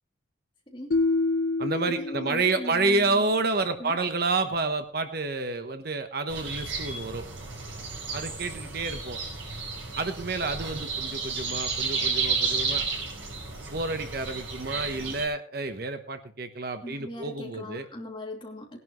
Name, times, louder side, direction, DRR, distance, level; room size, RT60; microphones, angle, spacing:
voice 1, 0.7-1.0 1.9-3.5 3.8-4.0 16.8-18.8, equal, 25° left, 0 dB, 2.8 m, -40 dB
sound 1, 0.9-3.1, left 3 dB, 70° left, 0.8 m, -28 dB
voice 2, 1.6-7.2 8.1-9.2 10.0-12.9 13.7-17.9, right 3 dB, 50° right, 8 dB, 1.0 m, -29 dB
sound 2, 6.3-15.3, right 4 dB, 75° right, 5.6 m, -32 dB
18.5 x 11.0 x 3.1 m, 0.43 s
head